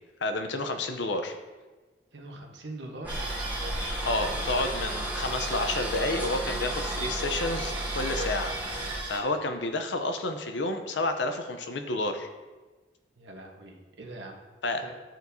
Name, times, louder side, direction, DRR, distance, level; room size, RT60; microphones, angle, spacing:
voice 1, 0.2-1.3 4.0-12.3 14.6-14.8, left 2 dB, 80° left, 7 dB, 0.7 m, -30 dB
voice 2, 2.1-3.2 13.2-14.4 14.8-14.9, right 2 dB, 80° right, 2 dB, 1.0 m, -42 dB
sound 1, 3.0-9.0, right 1 dB, 10° right, 0.8 m, -34 dB
sound 2, 3.1-9.2, right 2 dB, 25° right, 1.1 m, -36 dB
11.5 x 4.5 x 2.7 m, 1.3 s
head